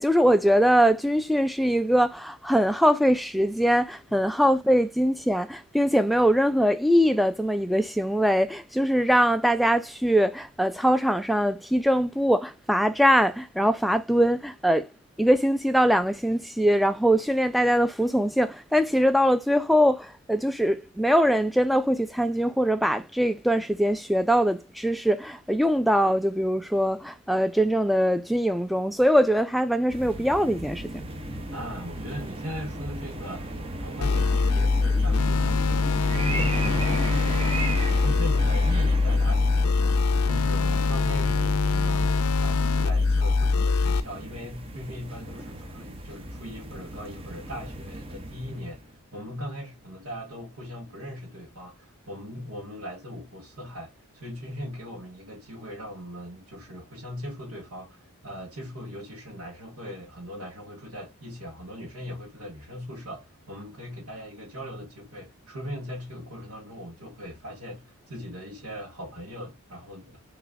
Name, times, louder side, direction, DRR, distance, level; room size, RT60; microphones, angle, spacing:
voice 1, 0.0-14.9 15.2-31.0, equal, ahead, 0.3 m, -22 dB
sound 1, 29.9-49.0, right 1 dB, 25° right, 0.6 m, -36 dB
voice 2, 31.5-48.8 49.1-70.2, equal, 75° right, 1.6 m, -39 dB
sound 2, 34.0-44.0, left 3 dB, 85° left, 0.4 m, -23 dB
5.9 x 3.0 x 2.4 m
head